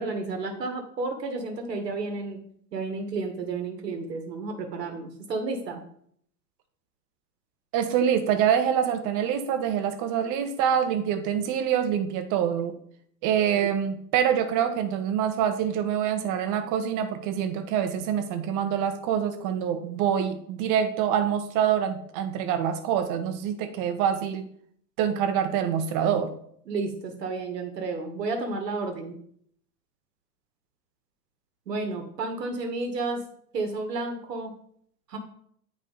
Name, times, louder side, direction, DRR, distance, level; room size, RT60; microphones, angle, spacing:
voice 1, 0.0-2.4 2.7-5.8 26.7-29.2 31.7-33.2 33.5-34.5 35.1-35.2, right 3 dB, 85° right, 4 dB, 1.7 m, -31 dB
voice 2, 7.7-12.7 13.2-24.4 25.0-26.3, right 9 dB, 40° right, 7 dB, 1.3 m, -25 dB
9.2 x 4.9 x 4.0 m, 0.64 s
hypercardioid pair, 110°, 48 cm